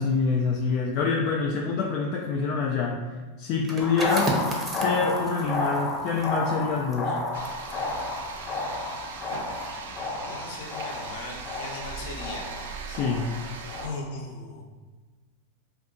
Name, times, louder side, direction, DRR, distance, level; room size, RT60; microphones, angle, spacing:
voice 1, 0.0-3.1 3.4-4.4 4.7-7.2 12.9-13.3, left 4 dB, 50° left, 0 dB, 0.3 m, -26 dB
sound 1, 3.5-9.0 9.4-9.7, right 1 dB, 20° right, 0.7 m, -36 dB
sound 2, 3.8-14.0, left 2 dB, 25° left, 0.8 m, -32 dB
sound 3, 7.3-13.9, right 5 dB, 80° right, 0.4 m, -40 dB
voice 2, 10.1-13.2 13.8-14.6, left 3 dB, 65° left, 1 dB, 0.8 m, -39 dB
2.6 x 2.4 x 3.8 m, 1.3 s
hypercardioid pair, 115°, 0 cm